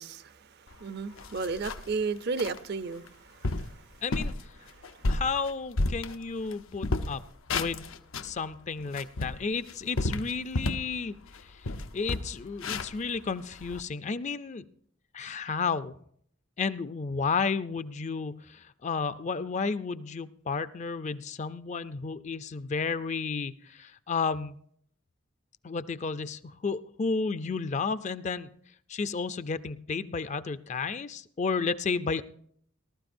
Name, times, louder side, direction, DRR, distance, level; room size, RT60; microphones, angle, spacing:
voice 1, 0.0-4.0 4.7-5.2, right 4 dB, 55° right, 0.6 m, -35 dB
sound 1, 0.7-0.8 1.2-2.0 2.4-2.6 3.1-3.2 3.4-3.7 4.1-4.4 4.8-6.5 6.8-8.4 8.8-10.9 11.3-11.4 11.6-13.8, left 2 dB, 85° left, 0.8 m, -31 dB
voice 2, 4.0-4.3 5.1-7.2 7.5-7.9 8.2-11.1 11.9-14.6 15.1-15.9 16.6-24.6 25.6-28.5 28.9-32.2, left 4 dB, 35° left, 0.4 m, -32 dB
19.5 x 12.5 x 2.6 m
head